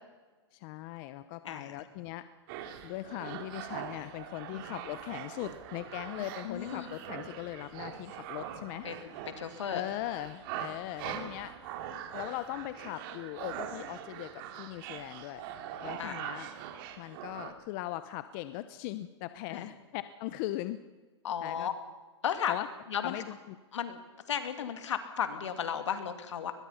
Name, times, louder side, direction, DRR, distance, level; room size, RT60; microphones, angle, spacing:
voice 1, 0.5-2.3 2.8-8.9 9.7-11.8 12.1-15.4 15.8-16.5 17.0-20.8 21.4-21.7 22.5-22.7 23.0-23.6, left 15 dB, 45° left, 12 dB, 0.9 m, -39 dB
voice 2, 1.4-1.8 4.7-4.8 6.4-6.9 8.8-9.8 16.0-16.2 19.5-19.7 21.2-21.7 22.2-22.5 22.9-23.2 23.7-24.0 24.3-26.5, left 8 dB, 75° left, 8 dB, 2.6 m, -34 dB
sound 1, 2.5-17.5, right 9 dB, 50° right, 2.6 m, -42 dB
22.5 x 21.0 x 5.8 m, 1.3 s
hypercardioid pair, 130°, 15 cm